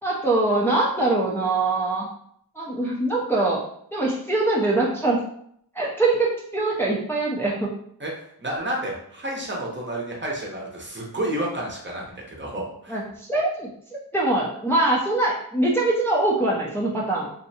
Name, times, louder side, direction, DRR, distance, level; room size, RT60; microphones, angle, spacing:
voice 1, 0.0-2.1 2.6-3.6 3.9-5.2 5.7-7.7 12.9-13.7 14.1-17.3, right 2 dB, 5° left, -4 dB, 0.5 m, -23 dB
voice 2, 8.4-13.0, right 1 dB, 30° right, -2 dB, 0.8 m, -30 dB
2.6 x 2.1 x 2.7 m, 0.68 s
cardioid pair, 45°, 39 cm